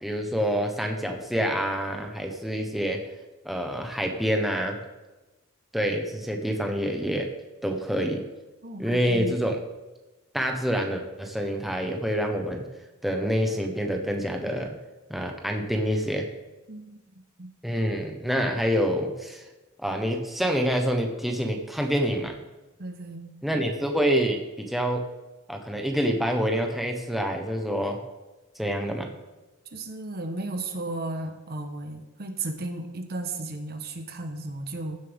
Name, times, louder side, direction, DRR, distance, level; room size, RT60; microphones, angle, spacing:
voice 1, 0.0-3.0 3.4-4.8 5.7-7.3 7.6-8.2 8.8-9.6 10.3-12.6 13.0-14.7 15.1-16.3 17.6-19.4 19.8-22.3 23.4-25.0 25.5-28.0 28.6-29.1, equal, ahead, 2 dB, 1.0 m, -27 dB
voice 2, 8.6-9.4 16.7-17.5 22.8-23.3 29.7-35.0, right 2 dB, 45° right, 6 dB, 1.0 m, -35 dB
15.5 x 7.5 x 3.5 m, 1.1 s
head